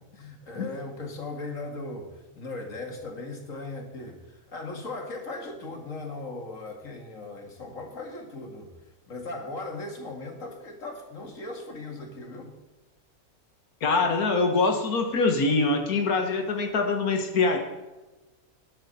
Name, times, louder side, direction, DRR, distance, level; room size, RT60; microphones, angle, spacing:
voice 1, 0.0-8.7 9.1-12.5, left 2 dB, 60° left, 4 dB, 2.4 m, -38 dB
voice 2, 13.8-17.6, left 3 dB, 80° left, 4 dB, 2.1 m, -24 dB
14.5 x 12.0 x 4.3 m, 1.1 s
omnidirectional pair, 1.5 m